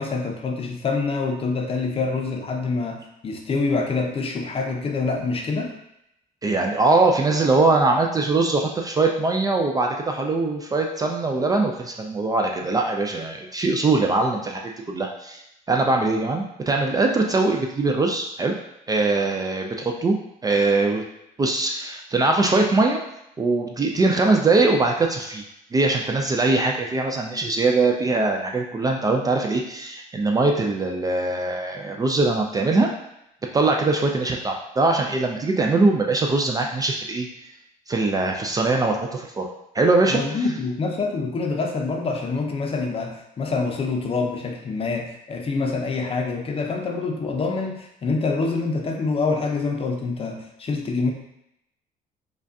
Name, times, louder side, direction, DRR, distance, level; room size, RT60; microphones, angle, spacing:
voice 1, 0.0-5.7 40.1-51.1, left 4 dB, 35° left, 2 dB, 0.6 m, -26 dB
voice 2, 6.4-14.6 14.9-15.4 15.7-18.5 18.9-20.2 20.4-21.0 21.4-23.0 23.4-25.4 25.7-32.9 33.5-37.3 37.9-39.5 39.7-40.2, right 3 dB, 20° right, 2 dB, 0.4 m, -21 dB
4.9 x 2.3 x 2.6 m, 0.81 s
cardioid pair, 110°, 17 cm